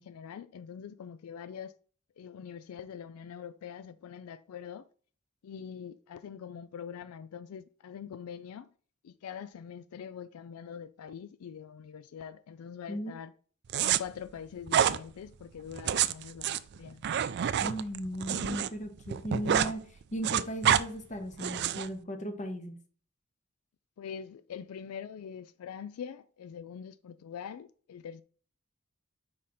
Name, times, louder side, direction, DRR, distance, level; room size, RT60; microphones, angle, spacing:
voice 1, 0.0-1.7 2.2-4.8 5.4-8.7 9.0-13.3 13.8-17.0 24.0-28.2, left 7 dB, 85° left, 0.3 m, -44 dB
sound 1, 13.7-14.0 14.7-15.0 15.7-18.7 19.0-19.7 20.0-20.8 21.4-21.9, right 9 dB, 50° right, 0.3 m, -27 dB
voice 2, 17.6-19.8 20.1-22.7, equal, 35° left, 1.0 m, -36 dB
4.9 x 4.1 x 5.7 m
head